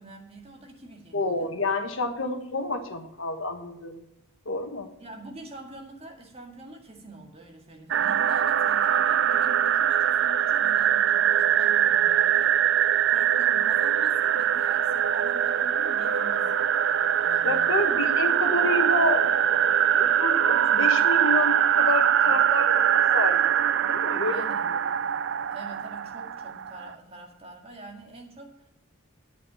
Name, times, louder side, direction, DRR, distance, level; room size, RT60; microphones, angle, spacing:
voice 1, 0.0-1.5 5.0-16.7 17.2-18.2 24.2-24.7 25.5-28.7, right 2 dB, 25° right, 0 dB, 1.9 m, -45 dB
voice 2, 1.1-4.0 4.4-4.9 17.4-19.2 19.9-23.4 23.9-24.8, left 2 dB, 65° left, 6 dB, 1.3 m, -29 dB
sound 1, 7.9-26.9, right 9 dB, 55° right, 0.3 m, -23 dB
9.0 x 8.7 x 7.0 m, 0.86 s
head